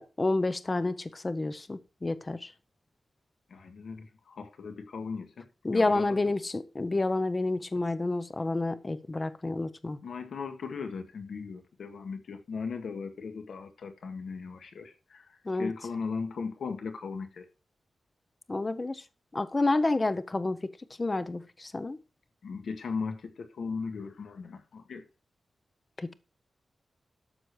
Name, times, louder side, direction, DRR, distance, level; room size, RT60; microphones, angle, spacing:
voice 1, 0.0-2.5 5.6-10.0 15.4-15.7 18.5-19.0 19.3-20.7 21.0-22.0 26.0-26.1, left 2 dB, 25° left, 0.7 m, -29 dB
voice 2, 3.5-5.4 5.7-6.0 10.0-15.2 15.6-17.4 22.4-25.0, left 5 dB, 75° left, 1.8 m, -37 dB
12.5 x 6.9 x 4.7 m
wide cardioid pair, 165°, 0 cm